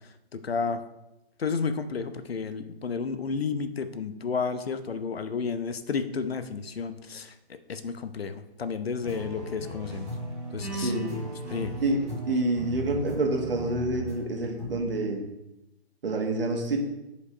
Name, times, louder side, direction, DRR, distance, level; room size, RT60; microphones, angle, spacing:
voice 1, 0.3-0.8 1.4-10.1 10.5-10.9 11.5-11.8, left 5 dB, 65° left, 10 dB, 0.9 m, -32 dB
sound 1, 9.0-14.1 14.6-15.0, right 1 dB, ahead, 3.2 m, -36 dB
voice 2, 10.8-11.2 11.8-15.2 16.0-16.8, right 2 dB, 60° right, 1 dB, 1.9 m, -27 dB
8.2 x 5.2 x 4.6 m, 0.92 s
figure-of-eight pair, 145°, 32 cm